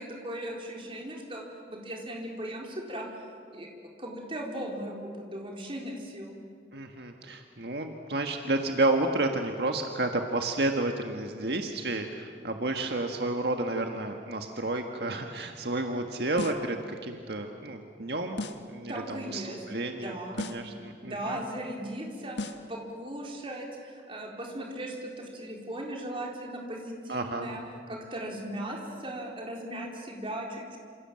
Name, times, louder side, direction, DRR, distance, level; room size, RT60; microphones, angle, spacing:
voice 1, 0.0-1.4 1.7-3.1 3.5-3.7 4.0-6.4 18.9-19.6 19.9-20.4 21.0-27.6 27.9-30.8, right 1 dB, 30° right, 0 dB, 4.4 m, -38 dB
voice 2, 6.7-18.4 18.7-21.4 27.1-27.5, right 2 dB, 70° right, 4 dB, 1.6 m, -31 dB
sound 1, 16.4-16.8 18.4-18.8 20.4-20.8 22.4-22.8, left 2 dB, 90° left, 1.6 m, -36 dB
27.5 x 27.5 x 7.7 m, 2.2 s
head